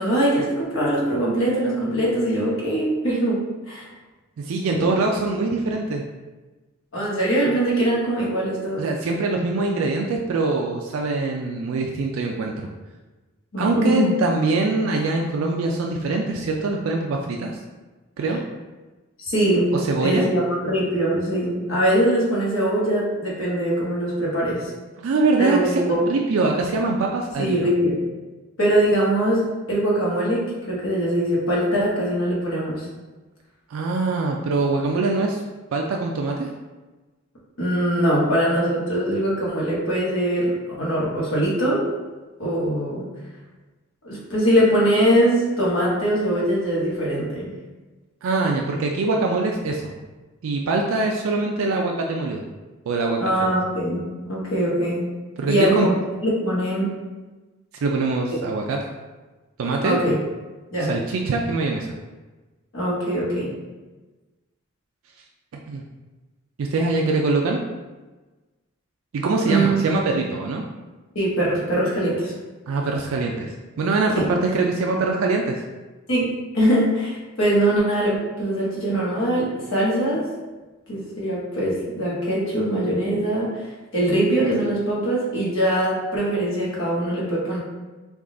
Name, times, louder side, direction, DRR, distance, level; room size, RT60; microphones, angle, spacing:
voice 1, 0.0-3.9 4.7-4.9 6.9-8.9 13.5-14.1 19.2-19.7 20.0-24.7 25.4-26.1 27.4-28.0 28.6-32.9 37.6-41.9 42.4-43.1 44.0-47.5 53.2-55.0 55.5-55.9 56.2-56.9 59.8-60.2 60.7-61.0 62.7-63.5 69.4-70.2 71.1-72.3 74.1-74.3 76.1-80.2 80.9-83.6 83.9-87.6, right 1 dB, 70° left, -6 dB, 1.1 m, -22 dB
voice 2, 4.4-6.0 8.8-12.7 13.6-17.5 18.2-18.4 19.7-20.3 25.0-25.8 26.1-27.6 33.7-35.4 35.7-36.5 48.2-49.8 50.4-52.4 52.9-53.5 55.4-55.9 57.8-58.8 59.6-60.0 60.9-61.9 65.7-65.8 66.6-67.6 69.1-70.6 72.7-75.6, right 3 dB, 85° right, 1 dB, 0.4 m, -23 dB
3.5 x 2.3 x 3.7 m, 1.2 s
head